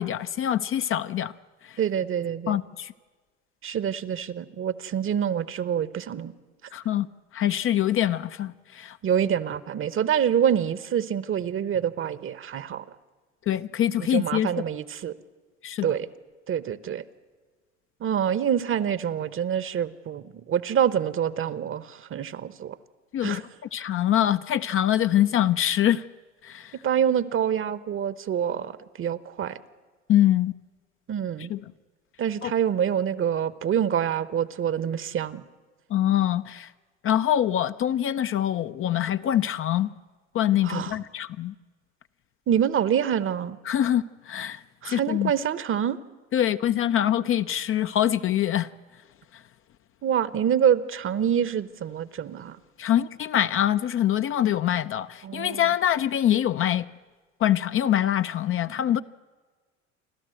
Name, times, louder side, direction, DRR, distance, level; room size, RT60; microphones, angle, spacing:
voice 1, 0.0-1.3 1.6-1.8 2.5-2.9 6.7-7.1 7.3-9.0 13.5-14.5 15.6-15.9 23.1-23.4 23.7-26.0 26.4-26.7 30.1-30.5 31.5-31.6 32.4-32.5 35.9-36.7 37.0-39.9 40.3-41.5 43.7-44.6 44.9-45.3 46.3-48.7 52.8-56.9 57.4-59.0, left 11 dB, 35° left, 0.6 m, -24 dB
voice 2, 1.8-2.6 3.6-6.3 9.0-12.8 14.1-15.2 15.8-16.1 16.5-17.0 18.0-22.8 23.2-23.4 26.8-29.6 31.1-31.5 32.2-35.4 40.6-41.0 42.5-43.6 44.8-46.0 50.0-52.6 55.2-55.7, right 9 dB, 35° right, 1.0 m, -26 dB
29.0 x 12.5 x 7.8 m
hypercardioid pair, 80°, 36 cm